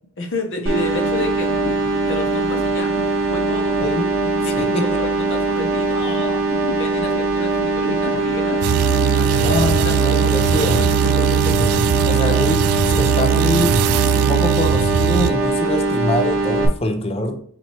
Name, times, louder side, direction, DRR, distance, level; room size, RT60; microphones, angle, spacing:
voice 1, 0.2-2.9 3.3-3.8 4.4-6.4 6.8-8.7 9.2-10.4 10.8-10.9 11.4-11.5, left 2 dB, 55° left, 5 dB, 0.8 m, -30 dB
sound 1, 0.5-15.6, left 3 dB, 80° left, 0.4 m, -35 dB
sound 2, 0.7-16.7, right 3 dB, 65° right, 0.8 m, -21 dB
voice 2, 3.8-4.1 4.4-5.0 9.4-10.8 12.1-13.8 14.2-17.4, left 1 dB, 25° left, 5 dB, 0.5 m, -24 dB
sound 3, 8.6-15.3, right 9 dB, 85° right, 0.3 m, -19 dB
4.3 x 4.2 x 2.9 m, 0.62 s
head